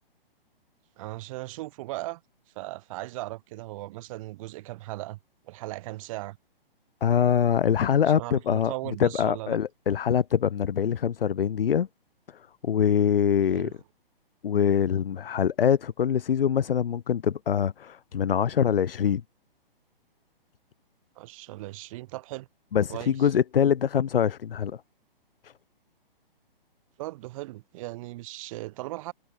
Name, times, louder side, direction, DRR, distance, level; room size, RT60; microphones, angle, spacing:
voice 1, 1.0-2.2 2.5-5.2 5.5-6.4 8.1-9.6 13.5-13.7 21.2-22.5 22.9-23.3 27.0-29.1, right 18 dB, 35° right, 2.5 m, -37 dB
voice 2, 7.0-8.7 9.0-11.9 12.6-13.7 14.4-19.2 22.7-24.8 25.4-25.5, left 8 dB, 70° left, 0.6 m, -24 dB
figure-of-eight pair, 130°, 29 cm